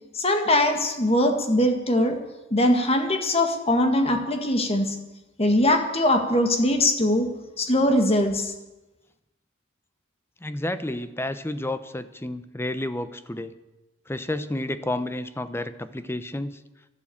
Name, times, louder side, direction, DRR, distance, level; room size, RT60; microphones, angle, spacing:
voice 1, 0.1-2.2 2.5-4.9 5.4-7.3 7.6-8.5, left 1 dB, 30° left, 5 dB, 1.9 m, -21 dB
voice 2, 10.4-13.6 14.1-16.6, left 1 dB, 15° left, 12 dB, 0.7 m, -31 dB
12.5 x 11.5 x 8.7 m, 1.0 s
head